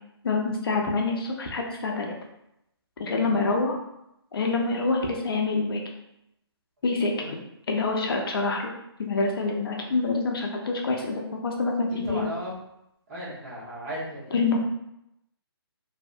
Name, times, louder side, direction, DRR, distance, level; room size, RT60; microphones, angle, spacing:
voice 1, 0.2-2.1 3.0-3.7 4.3-5.8 6.8-7.1 7.7-8.7 9.0-12.2 14.3-14.6, left 3 dB, 60° left, 1 dB, 0.5 m, -26 dB
voice 2, 7.0-7.4 11.9-12.5 13.1-14.6, equal, 35° right, -8 dB, 1.0 m, -36 dB
2.7 x 2.1 x 2.5 m, 0.82 s
figure-of-eight pair, 150°, 14 cm